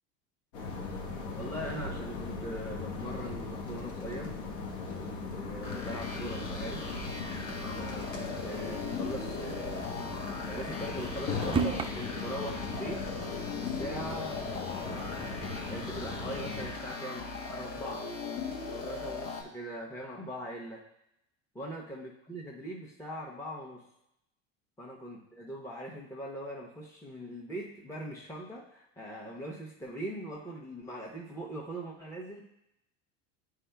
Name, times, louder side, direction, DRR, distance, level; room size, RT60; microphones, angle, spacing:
sound 1, 0.5-16.7, left 4 dB, 75° left, 1.2 m, -39 dB
voice 1, 1.3-4.3 5.0-6.9 7.6-13.0 13.6-15.3 15.7-17.2 17.5-18.1 18.7-20.8 21.5-23.8 24.8-32.4, right 1 dB, 5° left, -3 dB, 0.9 m, -41 dB
sound 2, 5.6-19.4, left 4 dB, 35° left, 1.2 m, -39 dB
sound 3, 6.7-7.9 8.2-8.3 8.6-8.7 9.3-11.9, right 5 dB, 15° right, 0.3 m, -36 dB
9.6 x 4.7 x 2.3 m, 0.82 s
hypercardioid pair, 85°, 39 cm